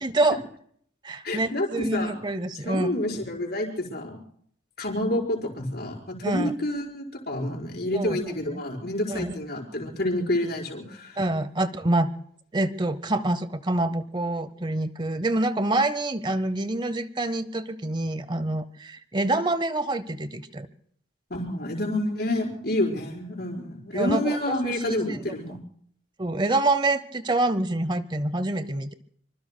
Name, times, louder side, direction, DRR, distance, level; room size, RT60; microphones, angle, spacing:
voice 1, 0.0-0.4 1.0-3.0 6.2-6.5 7.9-8.2 8.5-8.6 9.1-9.3 11.2-12.1 12.5-20.7 23.9-24.4 24.6-25.2 26.2-28.9, right 2 dB, 25° right, 14 dB, 0.8 m, -26 dB
voice 2, 1.2-2.2 2.6-4.2 4.8-11.2 21.3-25.6, left 1 dB, 55° left, -1 dB, 4.7 m, -28 dB
26.0 x 25.5 x 2.2 m, 0.62 s
head